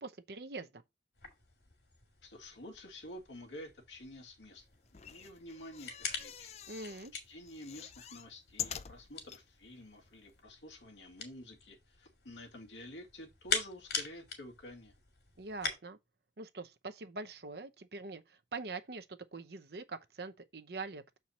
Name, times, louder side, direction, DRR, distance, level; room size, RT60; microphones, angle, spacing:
voice 1, 0.0-0.8 6.7-7.1 15.4-16.0 16.4-21.2, right 3 dB, 60° right, 0.8 m, -44 dB
sound 1, 1.1-15.8, left 5 dB, 70° left, 2.5 m, -44 dB
voice 2, 2.2-4.6 4.9-6.5 7.1-14.9, left 1 dB, 90° left, 2.1 m, -50 dB
sound 2, 4.9-7.1 7.5-9.4 10.0-10.1 10.3-10.4, left 9 dB, 35° left, 0.5 m, -45 dB
7.2 x 4.6 x 4.2 m
head